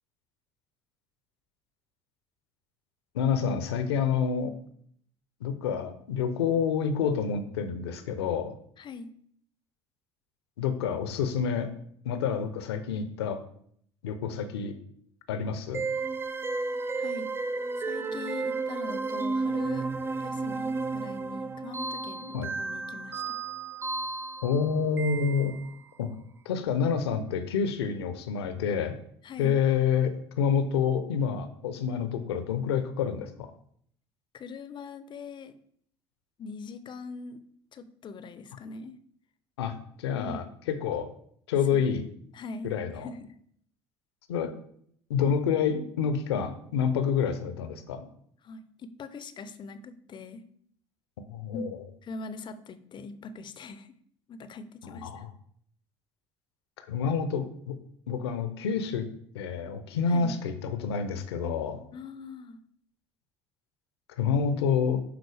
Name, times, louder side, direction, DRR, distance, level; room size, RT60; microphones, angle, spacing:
voice 1, 3.1-4.5 5.4-8.5 10.6-11.7 12.0-13.4 14.0-14.8 15.3-15.8 22.3-22.5 24.4-25.5 26.0-26.1 26.4-29.0 29.4-33.5 39.6-41.1 41.5-42.1 42.6-43.1 44.3-44.5 45.1-48.1 51.2-51.8 54.8-55.3 56.8-57.8 58.1-59.1 59.3-61.8 64.2-65.0, left 6 dB, 70° left, 10 dB, 0.7 m, -28 dB
voice 2, 8.8-9.1 16.9-17.3 17.8-19.9 20.2-23.4 29.2-29.5 34.3-35.5 36.4-37.4 37.7-39.0 40.2-40.4 41.7-41.9 42.3-42.7 43.0-43.3 48.4-50.4 51.5-51.6 52.0-53.9 54.3-55.2 60.1-60.4 61.9-62.6, left 4 dB, 35° left, 12 dB, 0.6 m, -41 dB
sound 1, 15.7-25.9, right 3 dB, 15° right, 0.5 m, -33 dB
11.0 x 3.9 x 3.3 m, 0.65 s
figure-of-eight pair, 60°, 14 cm